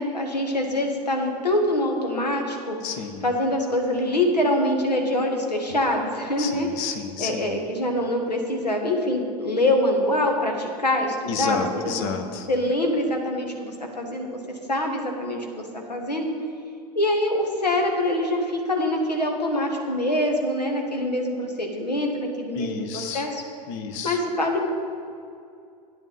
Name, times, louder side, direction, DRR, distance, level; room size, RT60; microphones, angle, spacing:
voice 1, 0.0-2.8 3.2-6.7 7.2-12.1 12.5-14.4 14.7-16.3 16.9-23.4 24.0-24.7, left 1 dB, 85° left, 2 dB, 1.5 m, -24 dB
voice 2, 2.8-3.2 6.4-7.6 11.3-12.5 22.5-23.3 23.7-24.2, left 6 dB, 50° left, 7 dB, 1.0 m, -31 dB
10.5 x 9.5 x 4.0 m, 2.4 s
figure-of-eight pair, 85°, 21 cm